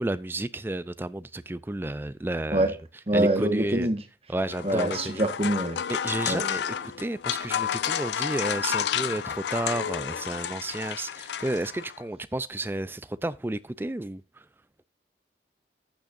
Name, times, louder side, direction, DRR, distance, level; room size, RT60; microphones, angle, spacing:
voice 1, 0.0-2.8 3.1-3.9 4.3-5.2 5.9-6.7 7.0-14.4, right 1 dB, 10° right, 0.4 m, -32 dB
voice 2, 3.1-4.0 4.6-5.8 6.3-6.4, right 1 dB, 35° right, 1.3 m, -25 dB
sound 1, 4.4-12.0, left 8 dB, 75° left, 0.4 m, -31 dB
14.5 x 6.5 x 2.5 m
head